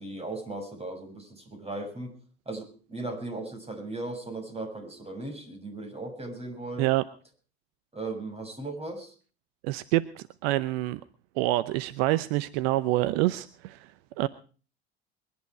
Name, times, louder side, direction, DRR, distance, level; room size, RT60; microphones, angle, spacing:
voice 1, 0.0-2.1 2.5-6.9 7.9-9.1, right 2 dB, 20° right, 5 dB, 7.0 m, -37 dB
voice 2, 9.6-11.0 11.4-13.9 14.2-14.3, right 16 dB, 70° right, 16 dB, 0.8 m, -26 dB
22.5 x 11.5 x 4.8 m, 0.39 s
hypercardioid pair, 70°, 31 cm